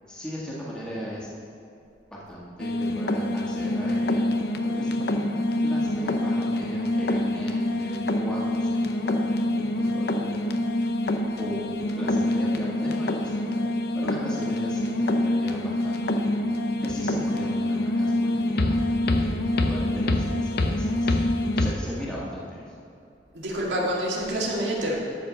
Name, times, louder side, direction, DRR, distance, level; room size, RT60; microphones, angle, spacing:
voice 1, 0.1-1.3 2.1-4.3 4.6-5.3 5.6-10.3 11.4-11.6 12.0-13.6 13.9-16.3 16.8-21.2 21.6-22.8, equal, 5° left, -7 dB, 1.7 m, -38 dB
sound 1, 2.6-21.7, left 1 dB, 60° left, 0.7 m, -25 dB
voice 2, 23.3-25.0, right 1 dB, 90° right, -3 dB, 2.2 m, -27 dB
12.5 x 4.8 x 7.1 m, 2.6 s
head